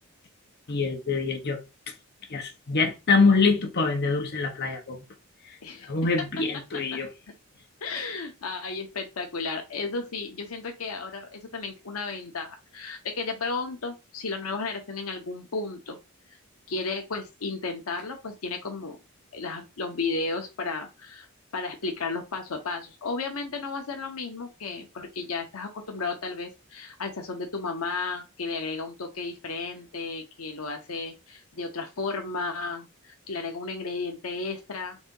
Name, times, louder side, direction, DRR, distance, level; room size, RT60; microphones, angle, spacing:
voice 1, 0.7-1.6 1.9-2.0 2.3-5.0 5.4-5.6 5.8-7.1 8.0-8.1, left 4 dB, 50° left, 0.9 m, -25 dB
voice 2, 5.6-5.9 7.8-16.0 16.7-19.0 19.3-21.3 21.5-35.0, left 4 dB, 80° left, 0.8 m, -33 dB
4.0 x 2.7 x 3.8 m
head